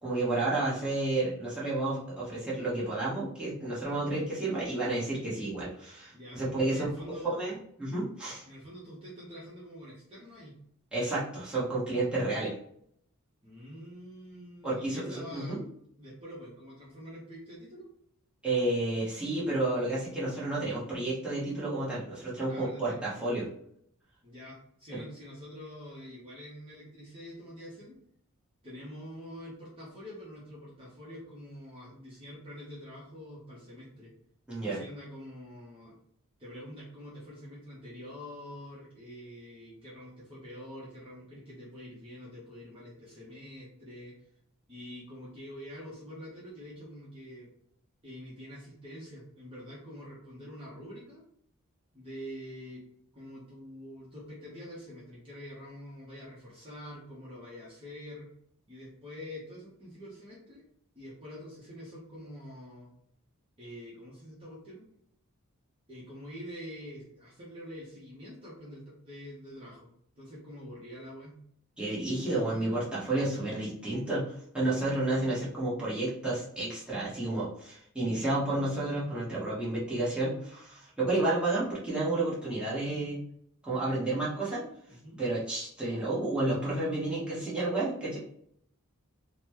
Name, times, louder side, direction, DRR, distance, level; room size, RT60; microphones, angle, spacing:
voice 1, 0.0-6.9 7.3-8.4 10.9-12.5 14.6-15.6 18.4-23.5 34.5-34.8 71.8-74.2 74.5-83.2 83.6-84.6 85.2-88.2, right 2 dB, 5° right, -9 dB, 1.2 m, -31 dB
voice 2, 6.7-7.5 8.5-10.6 13.4-15.6 16.0-17.9 22.5-23.2 24.2-27.9 28.6-34.1 34.6-35.9 36.4-44.1 44.7-47.5 48.0-51.2 51.9-52.8 53.1-58.3 58.7-60.7 60.9-62.9 63.6-64.9 65.9-69.9 70.2-71.4 84.9-85.2, equal, 25° right, -7 dB, 0.9 m, -46 dB
4.0 x 2.2 x 2.9 m, 0.68 s
head